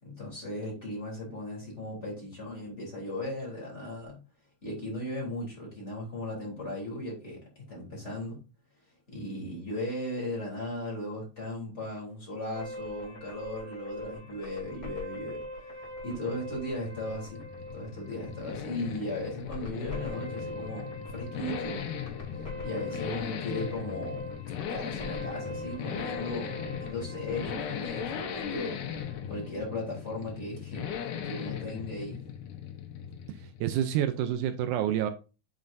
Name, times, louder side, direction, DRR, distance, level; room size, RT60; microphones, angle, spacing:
voice 1, 0.0-4.2 4.6-8.4 9.1-15.4 16.0-17.4 17.7-21.9 22.6-24.4 24.7-28.8 29.3-30.8 31.2-32.2, left 1 dB, 20° left, -4 dB, 3.3 m, -37 dB
sound 1, 12.5-29.6, left 1 dB, 5° left, 3.0 m, -42 dB
sound 2, 15.8-33.9, left 8 dB, 80° left, 2.5 m, -38 dB
voice 2, 33.3-35.1, right 10 dB, 80° right, 9 dB, 2.1 m, -28 dB
9.3 x 5.5 x 2.6 m, 0.32 s
omnidirectional pair, 3.7 m